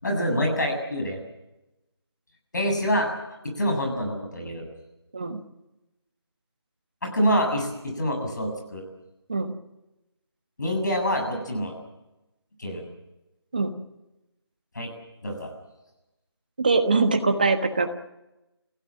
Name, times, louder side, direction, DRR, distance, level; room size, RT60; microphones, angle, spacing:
voice 1, 0.0-1.2 2.5-4.7 7.0-8.8 10.6-11.7 12.6-12.8 14.7-14.9 15.2-15.5, equal, 45° left, 2 dB, 7.5 m, -26 dB
voice 2, 16.6-17.9, right 3 dB, 20° right, 7 dB, 1.3 m, -22 dB
28.5 x 16.5 x 7.5 m, 0.97 s
figure-of-eight pair, 180°, 14 cm